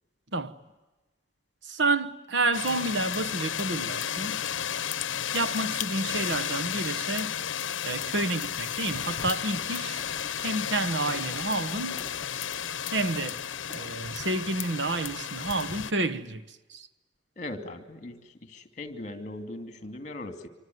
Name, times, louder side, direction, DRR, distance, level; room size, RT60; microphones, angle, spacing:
voice 1, 1.7-4.4 5.3-7.3 7.8-10.0 10.4-12.0 12.9-13.4 13.7-16.4 16.7-16.9, right 2 dB, 65° right, 1.2 m, -29 dB
sound 1, 2.5-15.9, left 9 dB, 80° left, 0.9 m, -33 dB
sound 2, 7.9-14.9, left 3 dB, 20° left, 1.8 m, -49 dB
voice 2, 17.4-20.5, left 2 dB, 40° left, 2.6 m, -39 dB
25.5 x 25.0 x 9.4 m
head